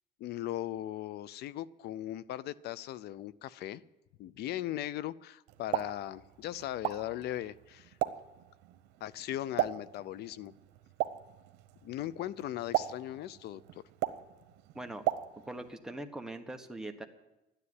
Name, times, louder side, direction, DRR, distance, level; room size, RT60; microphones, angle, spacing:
voice 1, 0.2-3.8 4.2-8.0 9.0-10.5 11.8-13.8, left 13 dB, 75° left, 20 dB, 0.6 m, -38 dB
Explosion, 5.5-15.7, right 14 dB, 90° right, 0.9 m, -38 dB
voice 2, 15.5-17.1, right 1 dB, 5° right, 4 dB, 1.3 m, -41 dB
12.5 x 9.9 x 9.7 m, 0.99 s
cardioid pair, 110°, 17 cm